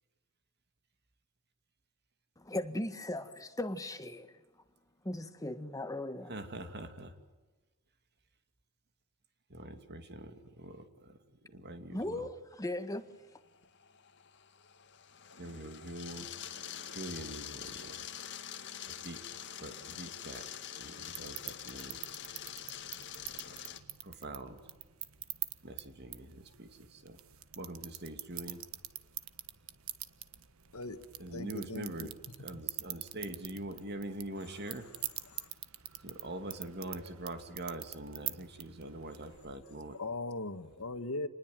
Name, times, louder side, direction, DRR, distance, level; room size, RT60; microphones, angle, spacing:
voice 1, 2.4-4.3 5.0-6.3 11.9-13.1, left 1 dB, 15° left, 1.6 m, -38 dB
voice 2, 6.3-7.1 9.5-11.2 11.5-12.3 15.4-16.3 16.9-18.1 18.9-19.2 19.6-20.5 20.7-22.0 23.3-23.6 24.0-24.6 25.6-27.2 27.6-28.6 31.2-32.1 32.4-34.9 36.0-40.0, right 1 dB, 50° right, 2.7 m, -44 dB
sound 1, 13.2-23.8, left 9 dB, 55° left, 1.9 m, -45 dB
sound 2, 21.1-39.6, right 13 dB, 70° right, 1.4 m, -45 dB
voice 3, 31.3-32.1 35.3-35.5 39.9-41.3, left 2 dB, 75° left, 1.9 m, -39 dB
28.0 x 20.5 x 9.2 m
head